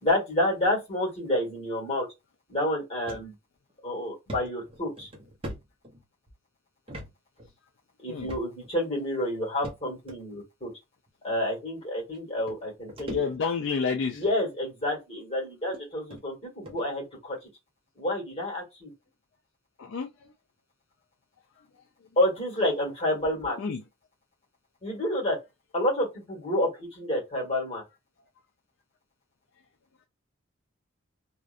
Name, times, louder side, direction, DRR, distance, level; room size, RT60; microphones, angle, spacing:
voice 1, 0.0-2.1 2.5-3.3 3.8-5.1 8.0-10.7 11.2-13.3 14.1-17.4 18.0-18.9 22.2-23.6 24.8-25.4 25.7-27.8, left 1 dB, 30° left, 1.3 m, -29 dB
sound 1, 3.1-3.3 3.7-3.8 4.3-6.3 6.9-7.1 7.4-7.5 8.3-8.7 9.6-10.2 11.1-11.2 12.1-12.2 12.5-13.7 14.1-14.4 15.2-15.3 15.7-15.8 16.1-16.2 16.7-16.9, equal, 25° right, 0.6 m, -41 dB
voice 2, 13.1-14.2 19.8-20.1 23.6-23.8, left 5 dB, 60° left, 0.3 m, -29 dB
2.5 x 2.1 x 2.4 m
head